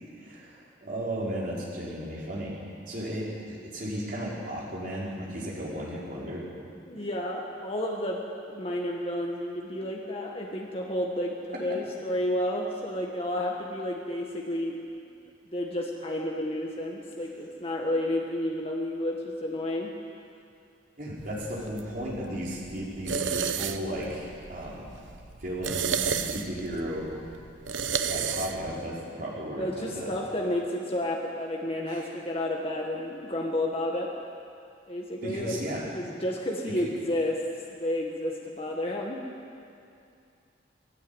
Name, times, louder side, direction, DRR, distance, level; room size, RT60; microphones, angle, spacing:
voice 1, 0.0-2.5 2.9-6.5 21.0-24.9 25.4-27.1 28.1-30.2 31.9-32.1 35.2-35.9, equal, 45° right, -6 dB, 5.5 m, -35 dB
voice 2, 6.9-14.8 15.5-19.9 29.6-34.1 34.9-35.6 35.9-37.4 37.7-39.2, left 1 dB, 30° left, -1 dB, 1.7 m, -31 dB
sound 1, 21.2-28.8, right 6 dB, 85° right, 0.9 m, -33 dB
20.0 x 16.0 x 9.2 m, 2.5 s
head